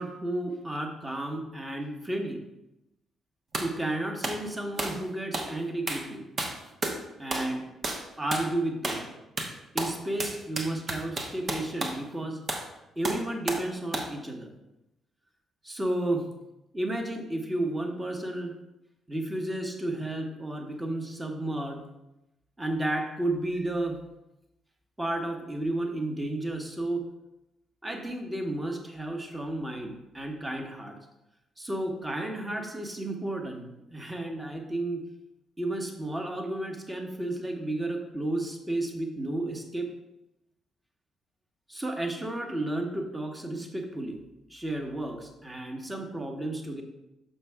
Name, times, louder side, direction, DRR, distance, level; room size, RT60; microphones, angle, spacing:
voice 1, 0.0-2.4 3.6-6.3 7.2-7.7 8.2-9.1 9.7-12.4 13.0-14.5 15.6-16.3 16.7-18.6 19.1-21.8 22.6-24.0 25.0-27.1 27.8-31.0 31.6-35.1 35.6-39.9 41.7-44.2 44.5-46.8, right 1 dB, 20° right, 3 dB, 1.2 m, -32 dB
sound 1, 3.5-3.7 4.2-4.4 4.8-5.0 5.3-5.5 5.9-6.1 6.4-7.0 7.3-7.5 7.8-8.0 8.3-8.5 8.8-9.1 9.4-12.0 12.5-12.7 13.0-13.7 13.9-14.1, right 2 dB, 45° right, 1.1 m, -32 dB
6.5 x 5.5 x 3.6 m, 0.92 s
hypercardioid pair, 45°, 0 cm